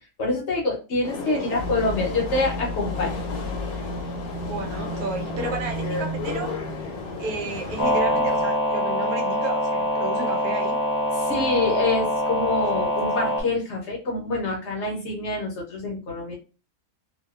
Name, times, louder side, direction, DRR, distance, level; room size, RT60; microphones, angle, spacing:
voice 1, 0.2-3.1 11.1-16.3, left 2 dB, 60° left, 0.8 m, -26 dB
sound 1, 1.0-7.8, left 4 dB, 75° left, 1.1 m, -34 dB
sound 2, 1.6-8.5, equal, 40° right, 1.2 m, -34 dB
voice 2, 4.4-6.5 7.2-10.8, right 3 dB, 85° right, 1.1 m, -32 dB
sound 3, 7.8-13.4, equal, 20° left, 0.5 m, -24 dB
2.6 x 2.1 x 2.3 m
omnidirectional pair, 1.6 m